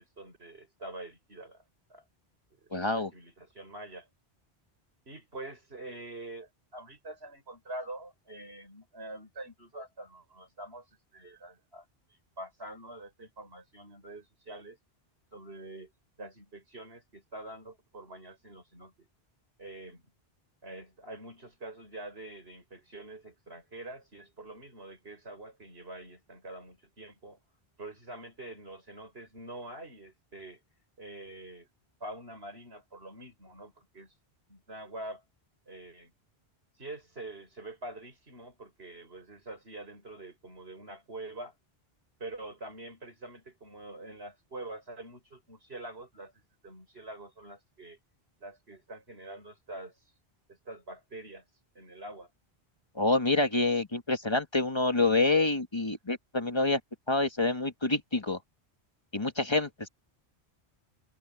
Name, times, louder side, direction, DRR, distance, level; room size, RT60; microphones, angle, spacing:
voice 1, 0.0-1.6 1.9-2.0 2.5-4.1 5.1-10.9 11.1-11.9 12.4-14.8 15.3-15.9 16.2-19.1 19.6-20.1 20.6-27.4 27.8-30.6 31.0-31.7 32.0-34.1 34.5-35.2 35.7-36.1 36.8-41.5 42.2-48.0 48.4-49.9 50.5-51.4 51.7-52.3, right 2 dB, 75° right, 6.6 m, -45 dB
voice 2, 2.7-3.1 52.9-56.8 57.1-58.4 59.1-59.9, left 2 dB, 25° left, 1.6 m, -27 dB
omnidirectional pair, 1.1 m